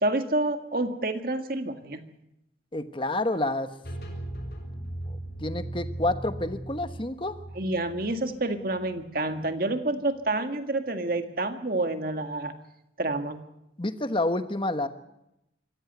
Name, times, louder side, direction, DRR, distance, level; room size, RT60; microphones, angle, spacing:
voice 1, 0.0-2.0 7.6-12.6 13.0-13.4, right 2 dB, 50° right, 7 dB, 1.8 m, -28 dB
voice 2, 2.7-3.7 5.1-7.4 13.8-14.9, left 2 dB, 25° left, 9 dB, 1.2 m, -29 dB
sound 1, 3.8-9.5, right 1 dB, 55° left, 5.8 m, -38 dB
25.0 x 14.5 x 8.2 m, 0.87 s
head